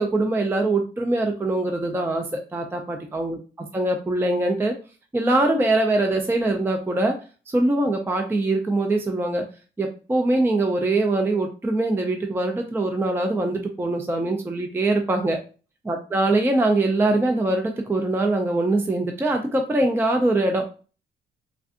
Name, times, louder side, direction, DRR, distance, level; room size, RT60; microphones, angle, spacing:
voice 1, 0.0-3.4 3.7-4.8 5.1-7.2 7.5-9.4 9.8-15.4 15.8-20.6, right 2 dB, 10° right, 4 dB, 0.4 m, -23 dB
3.3 x 2.5 x 2.4 m, 0.36 s
cardioid pair, 90°, 20 cm